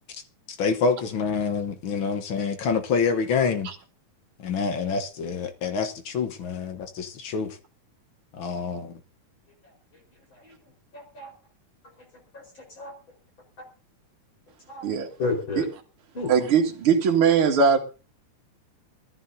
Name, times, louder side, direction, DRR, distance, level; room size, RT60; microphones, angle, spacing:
voice 1, 0.5-3.7 4.4-7.6 8.3-9.0, left 5 dB, 60° left, 1.4 m, -27 dB
voice 2, 10.9-11.3 12.3-12.9 14.7-14.9 15.2-15.7 16.1-16.3, left 3 dB, 35° left, 5.3 m, -32 dB
voice 3, 16.3-17.8, right 6 dB, 45° right, 2.9 m, -20 dB
21.5 x 14.5 x 2.8 m
omnidirectional pair, 3.6 m